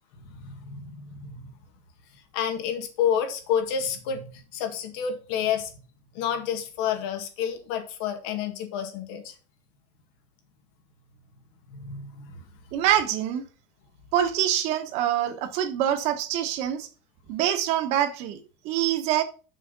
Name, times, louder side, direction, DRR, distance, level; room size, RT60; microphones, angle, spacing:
voice 1, 0.3-1.4 2.3-5.7 6.2-9.3 11.7-12.3, left 8 dB, 80° left, 1.8 m, -29 dB
voice 2, 12.7-13.4 14.1-16.9 17.3-18.4 18.6-19.2, right 11 dB, 55° right, 1.2 m, -25 dB
6.4 x 5.7 x 5.3 m
cardioid pair, 175°, 13 cm